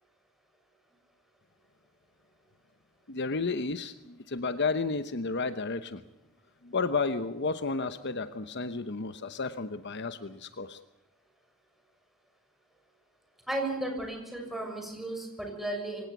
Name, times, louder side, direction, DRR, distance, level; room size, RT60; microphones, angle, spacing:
voice 1, 3.1-6.0 6.6-10.8, left 4 dB, 55° left, 11 dB, 1.0 m, -32 dB
voice 2, 13.5-16.1, right 1 dB, ahead, 2 dB, 6.4 m, -34 dB
24.5 x 18.0 x 8.3 m, 0.93 s
head